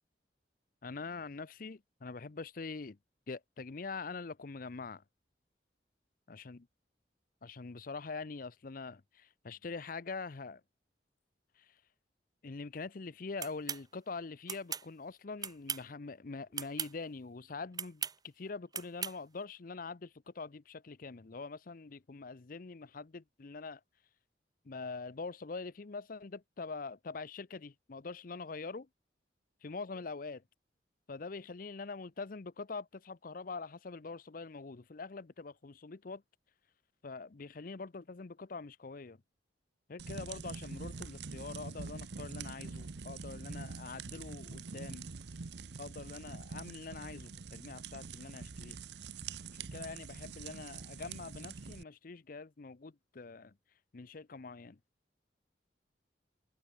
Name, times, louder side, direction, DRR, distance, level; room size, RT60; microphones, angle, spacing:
voice 1, 0.8-3.0 3.3-5.0 6.3-6.7 7.4-10.6 11.6-11.8 12.4-23.8 24.6-28.9 29.6-30.4 31.1-36.2 37.0-39.2 39.9-45.1 45.8-48.8 49.5-53.6 53.9-54.8, left 4 dB, 50° left, 0.6 m, -44 dB
sound 1, 13.4-13.8 14.5-14.9 15.4-15.9 16.5-16.9 17.7-18.2 18.7-19.2, right 7 dB, 20° right, 1.1 m, -38 dB
sound 2, 40.0-51.8, right 4 dB, 65° right, 0.8 m, -45 dB
head